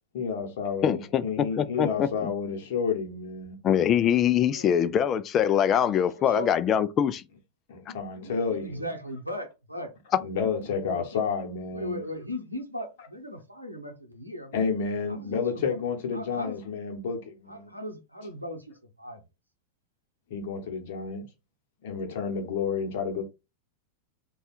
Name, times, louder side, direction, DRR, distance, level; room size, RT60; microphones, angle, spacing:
voice 1, 0.1-3.6 7.7-8.9 10.2-12.0 14.5-17.7 20.3-21.3 21.8-23.2, left 5 dB, 55° left, 1.0 m, -30 dB
voice 2, 0.8-1.2 1.6-2.3 3.6-7.2, left 9 dB, 30° left, 0.3 m, -23 dB
voice 3, 6.1-6.5 8.2-9.9 10.2-10.3 10.7-11.2 11.7-14.7 15.1-15.7 16.1-16.6 17.5-19.2, left 1 dB, 90° right, 0.8 m, -38 dB
3.2 x 2.3 x 4.2 m
figure-of-eight pair, 90°, 0 cm